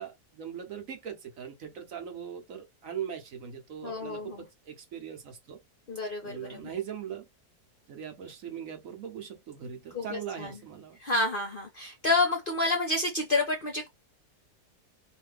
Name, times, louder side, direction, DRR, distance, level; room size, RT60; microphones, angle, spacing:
voice 1, 0.0-5.6 6.2-7.3 7.9-11.0, right 8 dB, 60° right, 1.1 m, -40 dB
voice 2, 3.8-4.4 5.9-6.7 9.9-10.6 11.0-13.9, left 2 dB, 50° left, 0.7 m, -29 dB
2.7 x 2.5 x 3.2 m
omnidirectional pair, 1.7 m